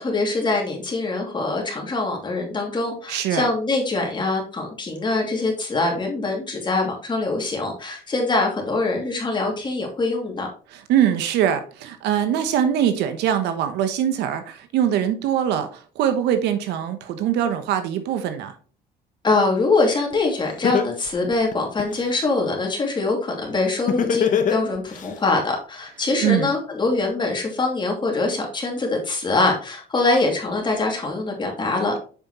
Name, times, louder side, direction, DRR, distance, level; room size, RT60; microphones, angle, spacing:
voice 1, 0.0-10.5 19.2-32.0, left 3 dB, 25° left, 2.6 m, -23 dB
voice 2, 3.1-3.5 10.7-18.5 26.2-26.5, right 9 dB, 85° right, 1.1 m, -22 dB
Laughter, 20.1-20.2 20.6-22.1 23.9-25.1, left 7 dB, 50° left, 1.0 m, -21 dB
7.2 x 5.5 x 3.0 m
cardioid pair, 110°, 17 cm